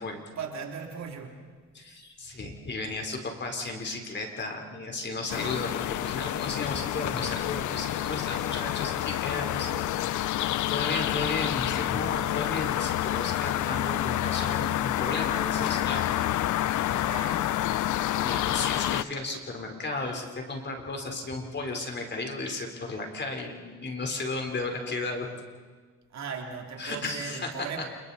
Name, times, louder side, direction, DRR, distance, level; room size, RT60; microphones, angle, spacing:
voice 1, 0.4-1.4 16.9-17.5 26.1-27.8, right 6 dB, 65° right, 2 dB, 3.3 m, -38 dB
voice 2, 1.7-10.1 10.7-16.1 18.2-25.3 26.8-27.8, left 2 dB, 35° left, 3 dB, 4.0 m, -34 dB
sound 1, 5.3-19.0, left 13 dB, 75° left, 0.7 m, -28 dB
29.0 x 29.0 x 4.2 m, 1.5 s
cardioid pair, 90°, 30 cm